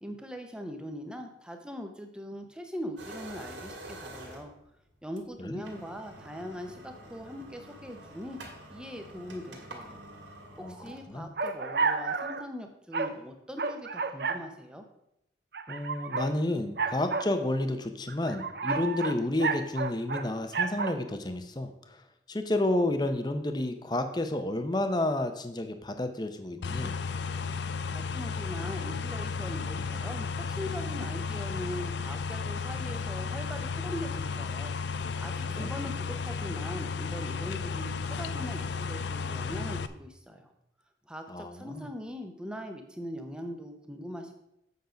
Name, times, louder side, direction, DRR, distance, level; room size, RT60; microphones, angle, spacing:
voice 1, 0.0-4.5 5.0-8.4 8.7-10.0 10.6-14.8 27.9-34.7 35.2-40.5 41.1-44.3, equal, 5° right, 5 dB, 0.8 m, -41 dB
sound 1, 3.0-4.6 5.2-5.3 5.6-11.7, right 1 dB, 80° right, 2.1 m, -47 dB
sound 2, 11.4-12.4 12.9-13.1 13.6-14.4 15.5-16.3 16.8-17.3 18.1-20.3 20.5-21.0, right 4 dB, 55° right, 0.6 m, -30 dB
voice 2, 15.7-22.0 22.3-26.9 35.6-35.7 41.3-41.8, left 1 dB, 25° left, 7 dB, 0.7 m, -30 dB
sound 3, 26.6-39.9, left 5 dB, 70° left, 0.4 m, -34 dB
8.1 x 6.5 x 5.1 m, 0.81 s
head